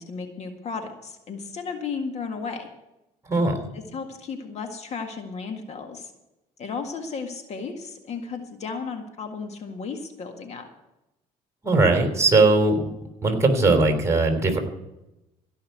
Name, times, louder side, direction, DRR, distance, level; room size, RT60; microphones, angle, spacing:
voice 1, 0.0-2.7 3.7-6.1 6.6-10.7, left 5 dB, 50° left, 5 dB, 1.9 m, -34 dB
voice 2, 3.3-3.7 11.6-12.8 13.2-14.6, right 3 dB, 20° right, 4 dB, 3.5 m, -19 dB
16.5 x 5.7 x 9.3 m, 0.94 s
supercardioid pair, 85°, 14 cm